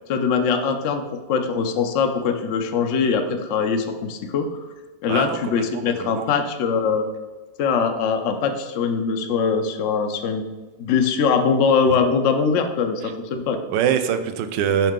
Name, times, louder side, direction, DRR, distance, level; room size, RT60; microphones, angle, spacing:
voice 1, 0.1-1.0 1.3-4.7 5.0-7.1 7.6-10.4 10.8-13.6, left 5 dB, 75° left, 5 dB, 0.6 m, -22 dB
voice 2, 5.7-6.3 13.7-14.9, right 8 dB, 75° right, 9 dB, 1.2 m, -23 dB
5.6 x 5.4 x 3.7 m, 1.2 s
omnidirectional pair, 2.0 m